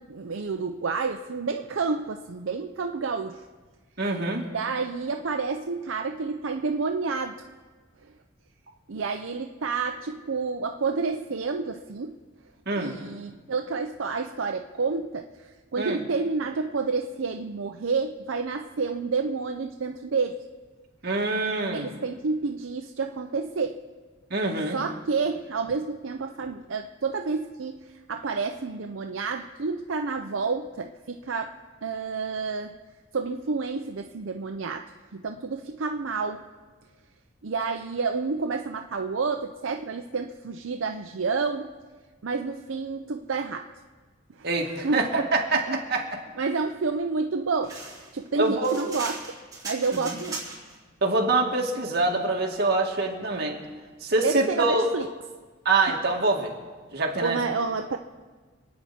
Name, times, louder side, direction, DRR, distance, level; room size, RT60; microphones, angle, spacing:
voice 1, 0.0-3.4 4.5-7.5 8.9-12.2 12.8-20.4 21.7-23.8 24.7-31.6 31.8-32.7 33.1-36.4 37.4-41.7 42.2-43.7 44.3-45.3 45.7-45.8 46.4-47.8 48.1-49.4 49.6-50.4 54.2-55.1 55.9-56.0 57.2-58.0, right 4 dB, 80° right, 5 dB, 0.6 m, -29 dB
voice 2, 4.0-4.4 12.7-13.0 15.8-16.0 21.0-21.9 24.3-24.8 44.4-46.2 48.4-48.7 49.9-50.1 51.0-53.6 54.0-54.9 55.6-56.5 56.9-57.4, right 3 dB, 55° right, 0 dB, 2.3 m, -25 dB
sound 1, 47.6-50.8, right 3 dB, 20° right, 4.8 m, -38 dB
26.5 x 9.4 x 4.3 m, 1.4 s
head